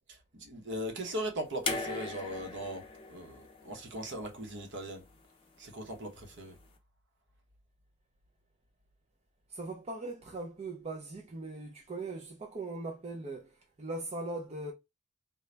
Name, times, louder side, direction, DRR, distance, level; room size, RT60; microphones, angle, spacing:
voice 1, 0.3-2.8 3.1-5.0 5.6-6.5, right 1 dB, 50° right, 0.9 m, -39 dB
sound 1, 1.7-4.8 6.0-6.1, left 3 dB, 25° left, 0.6 m, -39 dB
voice 2, 9.5-14.7, right 2 dB, 30° right, 0.4 m, -40 dB
3.8 x 2.3 x 3.2 m
head